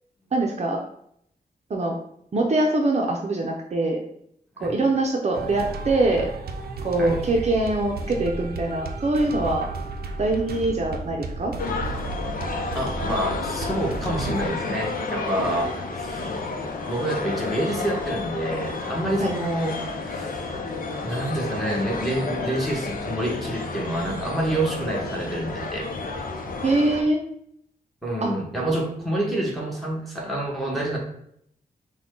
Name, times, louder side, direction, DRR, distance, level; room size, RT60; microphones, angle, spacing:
voice 1, 0.3-0.8 1.7-1.9 2.3-4.0 4.6-6.3 6.8-9.7 10.2-11.5 19.2-19.3 26.6-27.2 28.2-28.3, right 2 dB, 45° right, 1 dB, 0.6 m, -23 dB
sound 1, 5.3-14.5, right 3 dB, 90° right, 0.5 m, -33 dB
sound 2, 11.6-27.0, left 3 dB, 65° left, 0.7 m, -31 dB
voice 2, 12.7-25.9 28.0-31.0, right 1 dB, ahead, -3 dB, 1.3 m, -28 dB
5.9 x 2.3 x 3.8 m, 0.71 s
wide cardioid pair, 120°, 16 cm